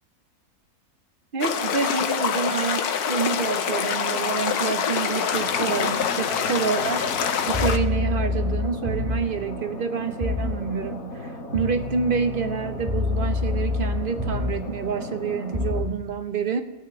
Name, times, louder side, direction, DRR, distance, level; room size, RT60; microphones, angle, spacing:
voice 1, 1.3-7.0 7.5-16.6, right 6 dB, 50° right, 8 dB, 0.7 m, -28 dB
sound 1, 1.4-7.8, left 7 dB, 75° left, 1.3 m, -25 dB
sound 2, 5.3-15.8, left 1 dB, 60° left, 2.4 m, -37 dB
sound 3, 7.5-9.4 10.2-10.6 11.5-14.7 15.5-15.9, left 3 dB, 20° right, 1.4 m, -27 dB
15.5 x 6.5 x 7.6 m, 1.2 s
omnidirectional pair, 1.6 m